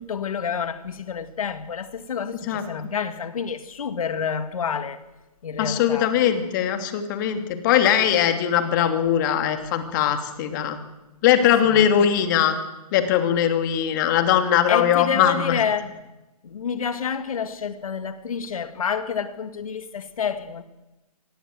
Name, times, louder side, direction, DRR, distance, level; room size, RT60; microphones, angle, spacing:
voice 1, 0.0-5.0 5.4-6.1 11.6-12.1 14.7-15.9 16.4-20.6, left 6 dB, 60° left, 2.2 m, -28 dB
voice 2, 5.6-10.8 11.2-12.6 12.9-15.6, left 9 dB, 30° left, 2.8 m, -20 dB
25.5 x 19.5 x 7.9 m
hypercardioid pair, 150°, 20 cm